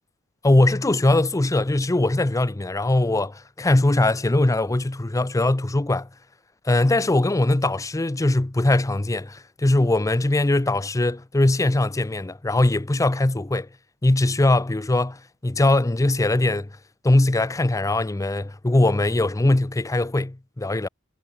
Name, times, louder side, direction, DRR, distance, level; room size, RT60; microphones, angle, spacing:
voice 1, 0.4-6.1 6.7-13.7 14.0-16.7 17.0-20.9, left 2 dB, 15° left, 0.5 m, -21 dB
head